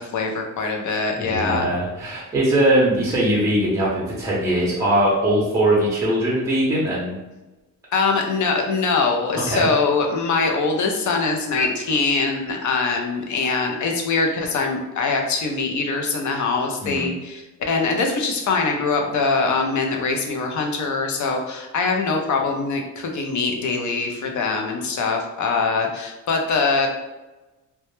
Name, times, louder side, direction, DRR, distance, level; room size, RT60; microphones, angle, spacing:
voice 1, 0.1-1.7 7.9-26.9, left 4 dB, 60° left, 2 dB, 0.5 m, -23 dB
voice 2, 1.2-7.2 9.5-9.7 16.8-17.1, right 1 dB, 10° right, -5 dB, 0.6 m, -21 dB
2.1 x 2.0 x 2.9 m, 1.1 s
wide cardioid pair, 135°, 34 cm